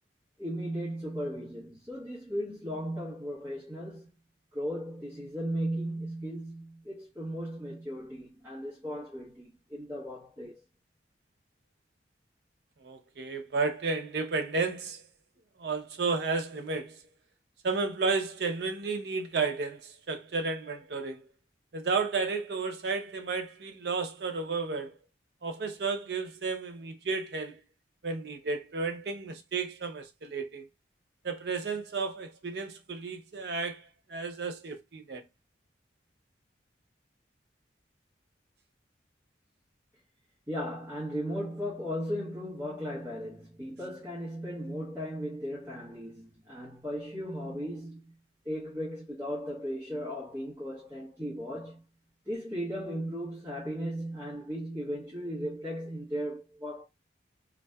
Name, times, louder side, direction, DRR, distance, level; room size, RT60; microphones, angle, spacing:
voice 1, 0.4-4.1 4.5-10.6 40.5-48.2 48.4-51.8 52.3-56.8, equal, 15° right, 0.8 m, -36 dB
voice 2, 12.8-15.0 15.6-17.0 17.6-21.2 21.7-24.9 25.4-27.6 28.0-30.7 31.2-35.2, right 4 dB, 60° right, 0.5 m, -32 dB
2.6 x 2.1 x 2.2 m
head